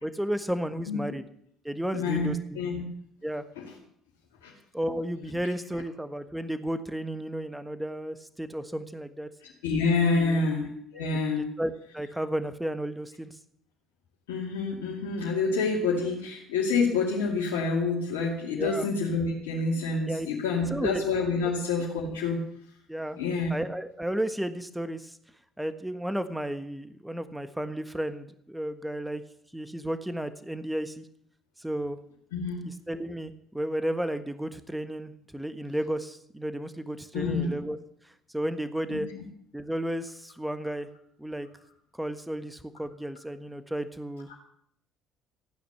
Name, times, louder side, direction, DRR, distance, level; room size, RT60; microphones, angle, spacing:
voice 1, 0.0-1.2 1.6-2.6 3.2-3.4 4.7-9.3 10.1-10.5 11.6-13.4 18.6-18.9 20.1-21.0 21.4-21.6 22.9-23.2 23.5-25.2 25.6-29.2 29.5-31.0 31.6-32.0 32.6-37.8 38.3-39.1 39.5-40.9 41.2-41.5 42.0-44.3, right 1 dB, 5° right, 10 dB, 1.4 m, -33 dB
voice 2, 1.9-2.8 3.6-3.7 4.4-4.5 9.4-10.7 10.9-11.5 14.3-22.4 23.2-23.5 32.3-32.7 37.1-37.6 38.9-39.0 44.3-44.4, left 4 dB, 75° left, -4 dB, 2.5 m, -27 dB
15.0 x 9.5 x 7.1 m, 0.66 s
hypercardioid pair, 55°, 0 cm